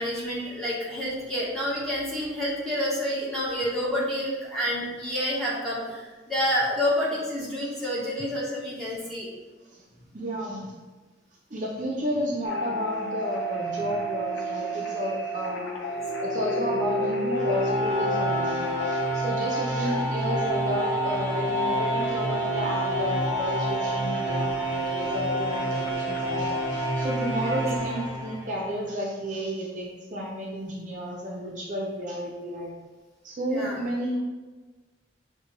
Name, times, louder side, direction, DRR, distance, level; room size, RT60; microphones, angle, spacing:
voice 1, 0.0-9.3 19.8-19.9 27.4-27.6 33.5-33.8, equal, ahead, -8 dB, 1.0 m, -29 dB
voice 2, 10.1-10.7 11.5-15.7 16.2-32.7 33.2-34.2, equal, 40° right, -2 dB, 0.5 m, -32 dB
sound 1, 12.4-27.8, right 2 dB, 85° left, 0.6 m, -32 dB
sound 2, 15.9-28.9, left 1 dB, 35° left, 1.2 m, -29 dB
6.0 x 2.2 x 2.9 m, 1.3 s
head